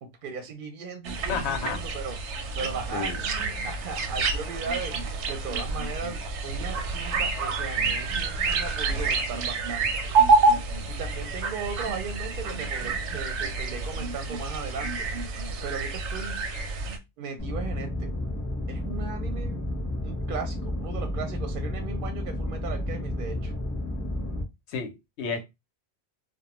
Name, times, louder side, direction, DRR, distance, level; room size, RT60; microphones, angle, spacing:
voice 1, 0.0-2.2 2.6-10.1 10.9-15.1 15.6-16.4 17.2-18.1 18.7-19.6 20.0-23.5, right 5 dB, 60° right, 0.6 m, -37 dB
sound 1, 1.0-17.0, right 3 dB, 90° right, 0.9 m, -28 dB
voice 2, 1.3-1.8 2.9-3.2 24.7-25.4, left 6 dB, 85° left, 0.9 m, -31 dB
sound 2, 17.4-24.4, left 1 dB, 15° left, 0.6 m, -31 dB
2.2 x 2.1 x 2.9 m
omnidirectional pair, 1.1 m